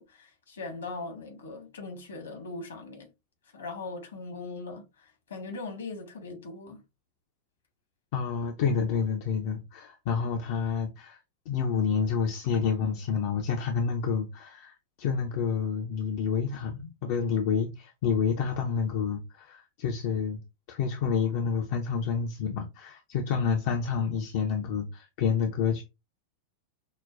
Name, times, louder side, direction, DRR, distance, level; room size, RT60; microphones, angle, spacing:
voice 1, 0.0-3.1 3.5-6.8, left 3 dB, 65° left, 1.3 m, -40 dB
voice 2, 8.1-11.2 11.5-20.4 20.7-25.8, left 6 dB, 50° left, 0.5 m, -29 dB
5.6 x 2.1 x 2.4 m
figure-of-eight pair, 90°, 0 cm